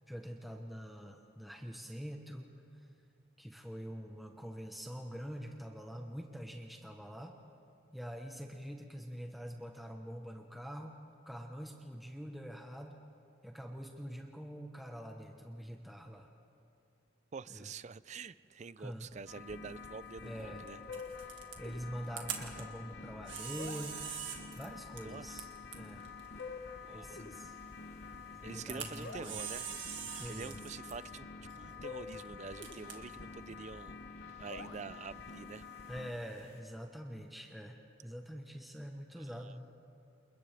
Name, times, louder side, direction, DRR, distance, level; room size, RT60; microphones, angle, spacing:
voice 1, 0.1-2.5 3.4-7.3 7.9-10.9 11.3-13.0 13.4-16.3 17.5-17.7 18.8-19.1 20.2-20.7 21.6-24.0 24.5-25.5 25.7-26.1 26.9-27.6 28.4-29.4 30.1-30.6 35.9-39.7, equal, ahead, 1 dB, 1.1 m, -45 dB
voice 2, 17.3-20.8 22.5-22.7 25.0-25.3 26.8-27.2 28.4-29.7 30.3-31.3 31.6-34.0 34.4-35.6 39.1-39.5, right 5 dB, 35° right, 17 dB, 0.4 m, -47 dB
Camera, 19.1-34.5, right 8 dB, 70° right, 2.0 m, -47 dB
sound 1, 19.3-36.1, left 5 dB, 55° left, 1.0 m, -48 dB
sound 2, 20.6-36.6, equal, 30° left, 2.6 m, -60 dB
29.0 x 28.5 x 3.5 m, 2.6 s
head